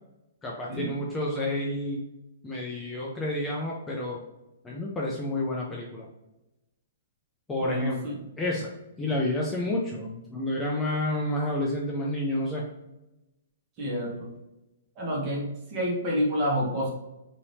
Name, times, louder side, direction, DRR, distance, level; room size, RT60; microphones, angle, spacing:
voice 1, 0.4-2.0 2.4-4.2 4.6-6.1 7.5-8.7 9.0-12.6, left 1 dB, 10° left, -3 dB, 0.4 m, -30 dB
voice 2, 7.6-8.2 13.8-14.3 15.0-15.4 15.7-16.9, equal, 25° right, -4 dB, 1.2 m, -28 dB
2.8 x 2.7 x 3.2 m, 0.96 s
hypercardioid pair, 155°, 0 cm